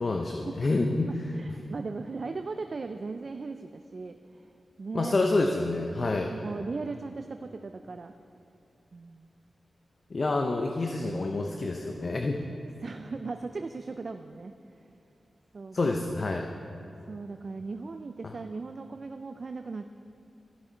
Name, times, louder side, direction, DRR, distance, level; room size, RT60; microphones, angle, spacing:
voice 1, 0.0-1.1 4.9-6.3 10.1-12.4 15.7-16.5 18.2-18.3, left 2 dB, 50° left, 3 dB, 0.6 m, -28 dB
voice 2, 1.1-4.5 4.8-5.1 6.3-8.1 8.9-9.3 12.8-14.5 15.5-15.8 17.1-19.9, right 4 dB, 55° right, 7 dB, 0.4 m, -38 dB
13.5 x 6.7 x 4.4 m, 2.7 s
cardioid pair, 65°, 0 cm